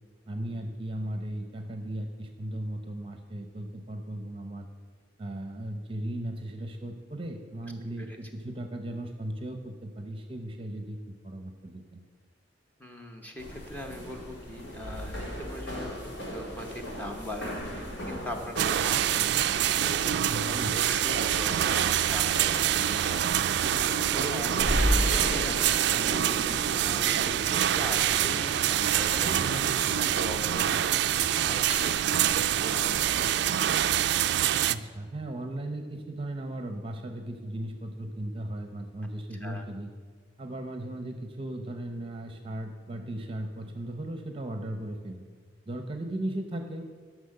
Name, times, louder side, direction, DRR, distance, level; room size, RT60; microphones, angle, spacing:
voice 1, 0.3-4.7 5.2-12.0 20.3-20.8 24.6-25.1 34.7-39.9 40.4-45.2 45.7-46.8, right 1 dB, 30° right, 6 dB, 0.8 m, -37 dB
voice 2, 12.8-33.7 39.4-39.6, equal, 10° left, 3 dB, 1.1 m, -41 dB
sound 1, 13.4-33.0, equal, 80° left, 3.8 m, -36 dB
sound 2, 18.6-34.7, right 11 dB, 60° right, 0.3 m, -26 dB
12.0 x 6.3 x 6.6 m, 1.5 s
head